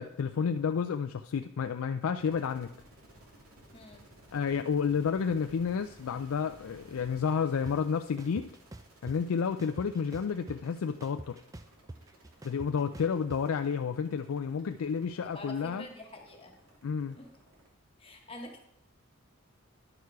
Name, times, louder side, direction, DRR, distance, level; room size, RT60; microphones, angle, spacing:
voice 1, 0.0-2.7 4.3-8.5 9.0-11.4 12.4-15.8 16.8-17.2, left 6 dB, 80° left, 7 dB, 0.4 m, -31 dB
sound 1, 2.2-17.7, right 1 dB, 85° right, 2.7 m, -58 dB
voice 2, 3.7-4.1 15.2-16.6 17.2-17.3 18.0-18.6, left 1 dB, 25° left, 1 dB, 1.2 m, -46 dB
sound 2, 7.7-7.8 8.2-9.2 9.6-10.7 11.0-13.4, right 2 dB, 15° right, 0.4 m, -45 dB
11.0 x 6.6 x 4.7 m, 0.75 s
head